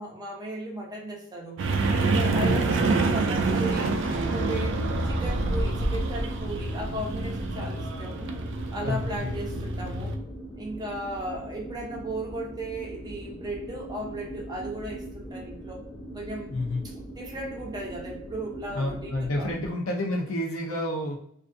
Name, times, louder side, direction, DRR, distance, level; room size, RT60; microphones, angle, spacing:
voice 1, 0.0-1.6 2.0-4.8 5.0-8.3 8.7-10.2 10.6-15.8 16.1-16.5 16.8-19.8, right 1 dB, 20° right, -2 dB, 0.6 m, -36 dB
sound 1, 1.6-10.2, right 3 dB, 65° right, 0.4 m, -27 dB
sound 2, 2.7-19.7, right 1 dB, 20° left, 0.6 m, -41 dB
voice 2, 8.8-9.4 16.5-16.8 18.7-21.2, left 1 dB, 90° left, 1 dB, 0.7 m, -29 dB
2.5 x 2.4 x 2.5 m, 0.69 s
head